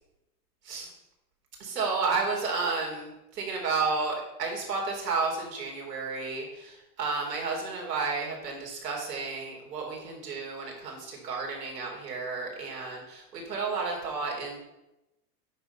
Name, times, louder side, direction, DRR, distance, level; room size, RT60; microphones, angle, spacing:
voice 1, 1.6-14.6, right 4 dB, 85° right, -1 dB, 3.9 m, -32 dB
9.2 x 6.6 x 5.6 m, 0.96 s
hypercardioid pair, 130°, 47 cm